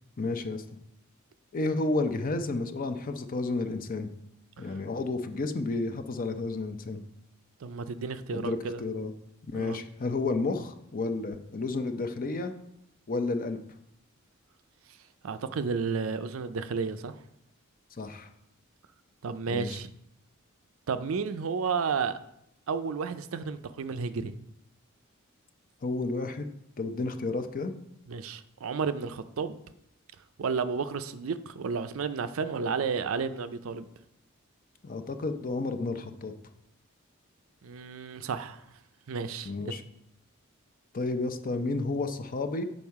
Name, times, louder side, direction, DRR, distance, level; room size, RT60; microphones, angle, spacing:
voice 1, 0.2-0.6 1.5-4.1 4.6-7.0 8.3-9.1 9.5-12.5 13.1-13.6 18.0-18.3 19.5-19.8 25.8-26.5 26.8-27.7 34.8-36.3 39.5-39.8 40.9-42.6, left 3 dB, 40° left, 8 dB, 0.6 m, -31 dB
voice 2, 7.6-8.8 9.5-9.8 15.2-17.1 19.2-19.9 20.9-22.2 22.7-24.3 28.1-29.6 30.4-33.9 37.6-38.6 39.1-39.8, right 5 dB, 70° right, 11 dB, 0.5 m, -32 dB
7.2 x 5.3 x 4.7 m, 0.78 s
head